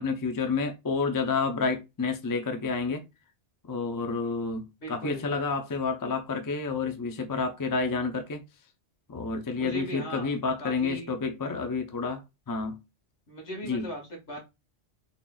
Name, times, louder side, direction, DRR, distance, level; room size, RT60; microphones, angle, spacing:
voice 1, 0.0-3.0 3.7-8.4 9.1-12.8 13.6-13.9, left 4 dB, 30° left, 0.4 m, -29 dB
voice 2, 4.8-5.3 9.6-10.3 10.6-11.1 13.3-14.4, equal, 70° left, 2.0 m, -38 dB
3.8 x 3.7 x 2.3 m
omnidirectional pair, 1.2 m